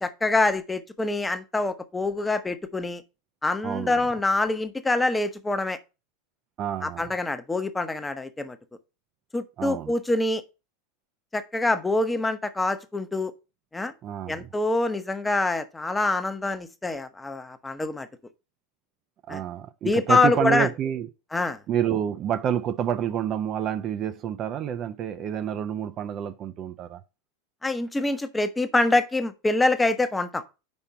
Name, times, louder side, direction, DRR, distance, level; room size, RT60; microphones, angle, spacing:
voice 1, 0.0-3.0 3.4-5.8 6.8-8.6 9.3-10.4 11.3-13.3 13.7-13.9 14.3-18.1 19.3-19.4 19.8-20.7 21.3-21.6 27.6-30.4, left 2 dB, 10° left, 0.8 m, -25 dB
voice 2, 3.6-4.1 6.6-7.1 9.6-9.9 14.0-14.5 19.3-21.1 21.7-27.0, right 9 dB, 40° right, 0.6 m, -28 dB
5.4 x 4.5 x 5.6 m
hypercardioid pair, 90°, 0 cm